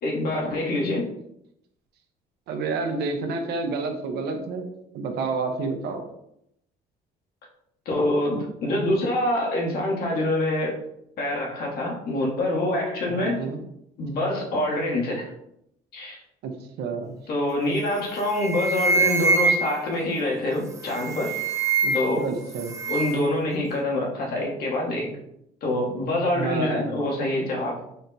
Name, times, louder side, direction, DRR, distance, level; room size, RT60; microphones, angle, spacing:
voice 1, 0.0-1.1 7.8-10.8 11.2-13.4 14.0-15.3 15.9-16.2 17.3-21.4 21.9-22.2 22.9-25.1 25.6-27.8, left 1 dB, 65° left, -1 dB, 1.2 m, -25 dB
voice 2, 2.5-4.7 4.9-6.0 13.1-13.6 16.4-16.5 16.8-17.2 21.8-22.7 26.3-27.0, right 4 dB, 75° right, 5 dB, 0.7 m, -29 dB
sound 1, 17.8-18.0 18.3-19.9 20.8-22.2 22.5-23.3, right 3 dB, 20° right, 0.5 m, -24 dB
4.2 x 2.2 x 4.0 m, 0.77 s
cardioid pair, 110°, 17 cm